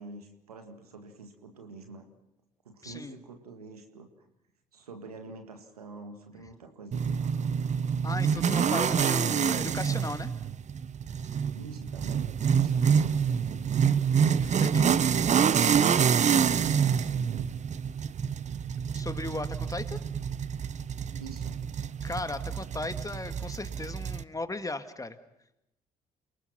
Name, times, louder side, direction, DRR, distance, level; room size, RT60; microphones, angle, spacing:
voice 1, 0.0-2.1 2.7-4.3 4.7-7.6 8.9-10.1 11.5-12.3 12.6-13.7 16.7-17.5 21.2-21.6, right 4 dB, 90° right, 6 dB, 1.9 m, -46 dB
voice 2, 2.8-3.1 8.0-10.3 14.3-14.9 18.9-20.0 22.0-25.2, left 2 dB, 20° left, 9 dB, 1.8 m, -36 dB
sound 1, 6.9-24.2, right 7 dB, 40° right, 0.8 m, -27 dB
29.0 x 19.0 x 5.9 m, 0.85 s
figure-of-eight pair, 45°, 19 cm